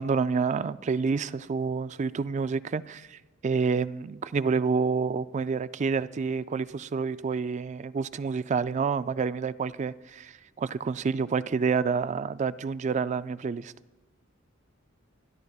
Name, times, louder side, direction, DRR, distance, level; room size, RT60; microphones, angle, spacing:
voice 1, 0.0-13.7, right 5 dB, 35° right, 0.3 m, -28 dB
23.5 x 12.0 x 2.4 m
head